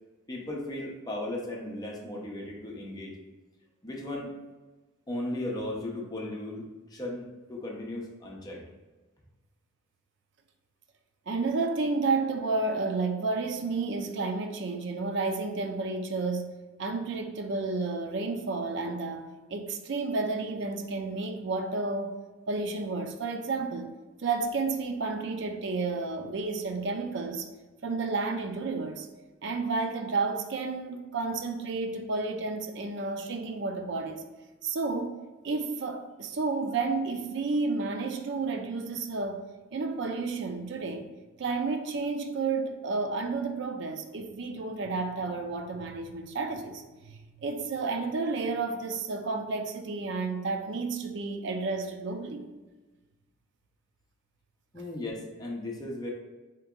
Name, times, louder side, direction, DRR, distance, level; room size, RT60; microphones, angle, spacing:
voice 1, 0.3-3.2 3.8-4.3 5.1-6.6 6.9-8.6 54.7-56.1, left 1 dB, 20° left, 0.6 m, -36 dB
voice 2, 11.3-22.2 22.5-23.9 24.2-27.5 27.8-29.1 29.4-34.2 34.6-35.2 35.4-39.4 39.7-41.1 41.4-52.5, right 3 dB, 60° right, 0.4 m, -31 dB
3.4 x 2.9 x 3.6 m
head